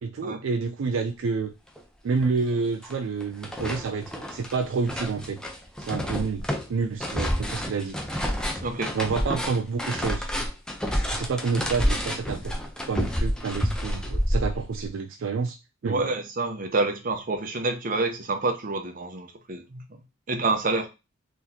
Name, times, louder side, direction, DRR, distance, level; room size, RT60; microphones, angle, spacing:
voice 1, 0.0-1.5 2.0-5.4 5.8-6.4 6.7-8.0 8.9-10.3 11.1-12.6 12.9-15.6 15.8-16.1, right 4 dB, 65° right, 6 dB, 0.4 m, -28 dB
sound 1, 1.8-1.9 2.2-2.9 3.2-14.9, equal, 5° left, 0.5 m, -29 dB
voice 2, 8.6-9.0 15.8-20.0 20.3-20.9, right 3 dB, 45° right, 5 dB, 0.7 m, -28 dB
3.9 x 3.1 x 2.7 m, 0.26 s
head